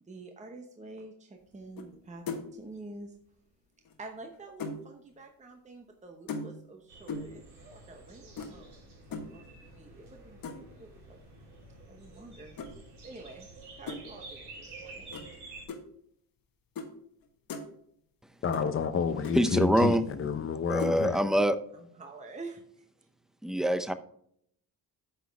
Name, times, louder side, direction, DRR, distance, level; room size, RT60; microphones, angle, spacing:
voice 1, 0.0-3.2 4.0-8.8 9.1-11.2 11.9-12.6 13.0-13.5 13.8-15.3 21.7-22.9, right 2 dB, 20° right, 0.9 m, -48 dB
sound 1, 1.8-2.0 2.3-2.6 3.9-4.9 6.3-6.7 7.1-7.4 8.4-8.5 9.1-9.3 10.4-10.8 12.6-12.7 13.9-14.0 15.1-15.3 15.7-15.8 16.8-16.9 17.2-17.7 18.5-18.6 18.9-19.0 19.2-19.4 20.8-21.0, left 3 dB, 60° left, 1.4 m, -38 dB
sound 2, 6.9-15.7, right 3 dB, 85° right, 3.9 m, -49 dB
voice 2, 18.4-21.2, left 6 dB, 35° left, 0.7 m, -29 dB
voice 3, 19.3-20.0 20.7-21.6 23.4-23.9, equal, ahead, 0.5 m, -25 dB
9.6 x 6.2 x 3.4 m
cardioid pair, 110°, 39 cm